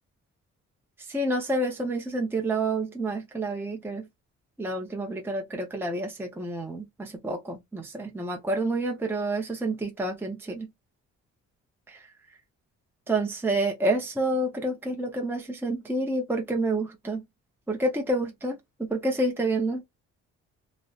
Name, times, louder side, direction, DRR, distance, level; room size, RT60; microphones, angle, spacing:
voice 1, 1.1-4.1 4.6-10.7 13.1-17.2 17.7-19.8, right 2 dB, 5° right, 0.6 m, -28 dB
2.6 x 2.1 x 2.2 m
cardioid pair, 90°, 30 cm